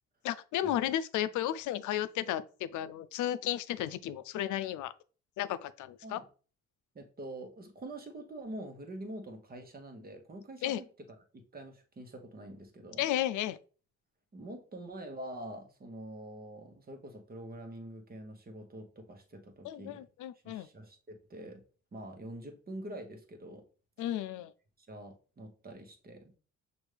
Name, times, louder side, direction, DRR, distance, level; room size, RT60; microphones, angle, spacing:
voice 1, 0.2-4.9 5.4-6.2 10.6-10.8 13.0-13.6 19.6-20.7 24.0-24.5, left 12 dB, 80° left, 0.5 m, -33 dB
voice 2, 6.9-10.9 11.3-13.0 14.3-20.1 20.4-21.6 21.9-23.6 24.0-24.1 24.8-26.4, right 1 dB, 30° right, 1.2 m, -45 dB
6.1 x 2.6 x 3.3 m
cardioid pair, 90°, 30 cm